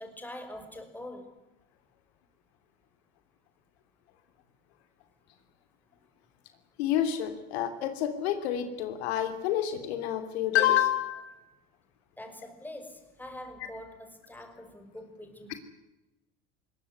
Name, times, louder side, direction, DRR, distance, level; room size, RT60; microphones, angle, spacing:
voice 1, 0.0-1.4 12.2-15.6, left 1 dB, 5° left, 6 dB, 5.6 m, -44 dB
voice 2, 6.8-11.4, left 11 dB, 80° left, 8 dB, 3.1 m, -28 dB
21.5 x 18.0 x 9.8 m, 0.98 s
supercardioid pair, 95°, 32 cm